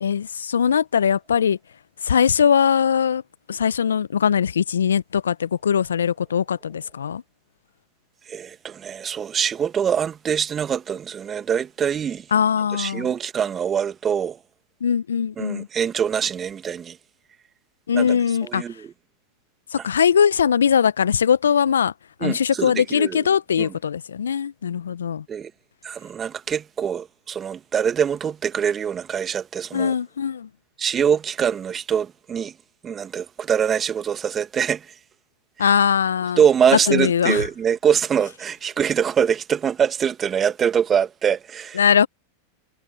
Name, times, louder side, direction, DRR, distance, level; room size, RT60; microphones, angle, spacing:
voice 1, 0.0-1.6 2.0-3.2 3.5-7.2 12.3-13.1 14.8-15.7 17.9-18.6 19.7-21.9 22.2-25.2 29.7-30.5 35.6-36.4 36.9-37.4 41.8-42.1, left 7 dB, 80° left, 0.9 m, -20 dB
voice 2, 8.3-12.3 12.7-14.4 15.4-17.0 17.9-18.9 19.8-19.9 22.2-23.3 23.6-23.7 25.3-25.5 25.8-29.9 30.8-32.5 32.8-34.9 35.6-35.7 36.4-41.8, right 8 dB, 25° right, 1.9 m, -24 dB
figure-of-eight pair, 90°, 0 cm